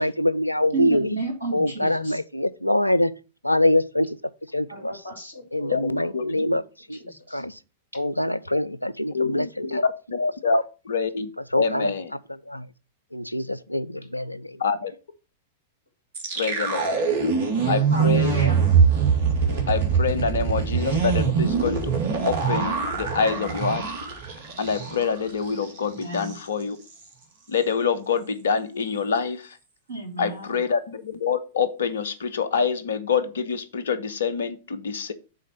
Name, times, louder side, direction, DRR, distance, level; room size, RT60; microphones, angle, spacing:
voice 1, 0.0-1.1 1.5-3.1 3.4-4.2 4.5-5.0 5.5-6.6 6.9-7.0 7.3-7.6 8.0-9.8 11.5-11.9 12.3-12.7 13.1-14.6 19.4-19.6, left 1 dB, 90° left, 0.4 m, -24 dB
voice 2, 0.7-2.2 4.7-5.8 6.0-6.1 7.0-7.4 17.9-18.6 25.9-26.3 29.9-30.5, right 3 dB, 80° right, 2.5 m, -33 dB
voice 3, 5.7-6.5 9.1-9.8 10.1-11.3 11.6-12.1 14.6-14.9 16.3-17.0 17.6-18.4 19.7-21.9 22.2-23.9 24.6-26.8 27.5-29.6 30.2-35.1, left 5 dB, 65° left, 0.8 m, -26 dB
sound 1, 16.1-25.2 25.5-25.6 26.0-26.4, right 6 dB, 55° right, 1.9 m, -23 dB
6.5 x 4.2 x 5.7 m
figure-of-eight pair, 95°, 0 cm